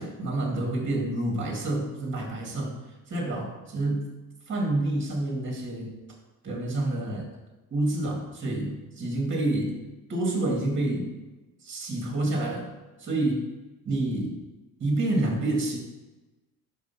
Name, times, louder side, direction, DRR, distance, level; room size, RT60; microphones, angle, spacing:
voice 1, 0.0-2.8 3.1-4.1 4.5-6.0 6.4-7.3 7.7-9.8 10.1-11.1 11.6-12.7 13.0-13.5 13.9-14.4 14.8-15.8, right 2 dB, 25° right, 0 dB, 2.0 m, -28 dB
5.1 x 4.7 x 5.7 m, 1.1 s
cardioid pair, 115°, 43 cm